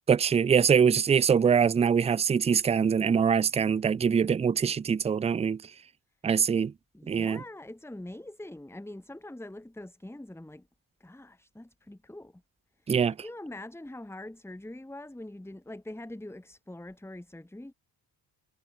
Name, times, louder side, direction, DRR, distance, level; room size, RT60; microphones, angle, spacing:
voice 1, 0.1-5.6 6.2-6.7 7.1-7.4 12.9-13.1, right 7 dB, 15° right, 0.3 m, -23 dB
voice 2, 6.9-10.7 11.0-12.4 12.8-12.9 13.2-17.7, left 1 dB, 5° left, 1.5 m, -43 dB
supercardioid pair, 45°, 45 cm